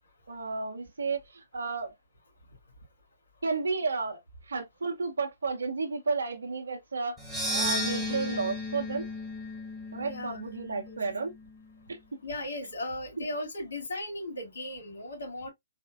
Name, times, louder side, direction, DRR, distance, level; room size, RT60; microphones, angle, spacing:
voice 1, 0.3-1.9 3.4-7.2 7.5-9.1 9.9-11.3 11.9-12.0 13.2-13.3, right 4 dB, 80° right, 0.7 m, -32 dB
sound 1, 7.2-11.5, left 1 dB, ahead, 1.1 m, -34 dB
voice 2, 10.0-10.5 10.9-11.0 12.2-15.5, left 1 dB, 70° left, 2.3 m, -37 dB
4.2 x 2.5 x 2.4 m
figure-of-eight pair, 130°, 0 cm